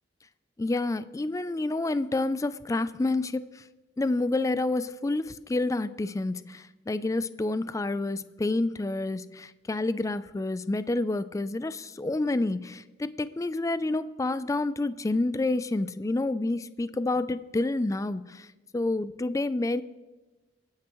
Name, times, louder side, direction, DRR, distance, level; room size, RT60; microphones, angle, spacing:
voice 1, 0.6-3.6 4.0-18.5 18.7-19.8, left 2 dB, 15° left, 14 dB, 0.3 m, -29 dB
28.0 x 9.6 x 3.1 m, 1.1 s
head